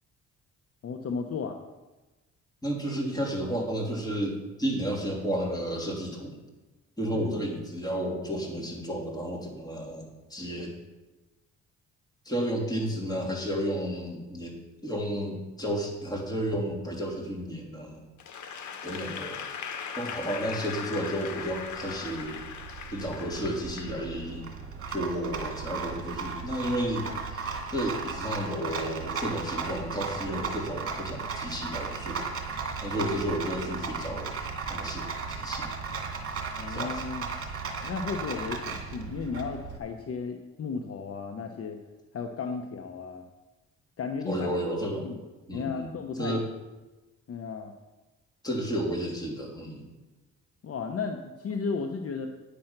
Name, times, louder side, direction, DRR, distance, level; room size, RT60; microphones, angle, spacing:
voice 1, 0.8-1.6 7.1-7.4 36.6-37.3 37.8-41.8 42.1-43.3 44.0-44.5 45.0-45.2 45.5-46.4 47.3-47.7 50.6-52.3, left 5 dB, 50° left, 4 dB, 0.9 m, -34 dB
voice 2, 2.6-6.4 7.0-10.7 12.2-18.0 18.8-19.4 19.9-22.5 22.9-24.5 24.9-27.1 27.3-32.3 32.8-34.3 34.7-35.7 36.7-37.0 44.3-45.1 45.5-46.5 48.4-49.9, equal, 10° left, -2 dB, 3.1 m, -32 dB
Applause / Crowd, 18.2-24.4, left 6 dB, 75° left, 1.3 m, -39 dB
Rattle, 21.5-39.8, right 5 dB, 45° right, 2.2 m, -36 dB
10.0 x 7.8 x 5.9 m, 1.1 s
cardioid pair, 90°, 30 cm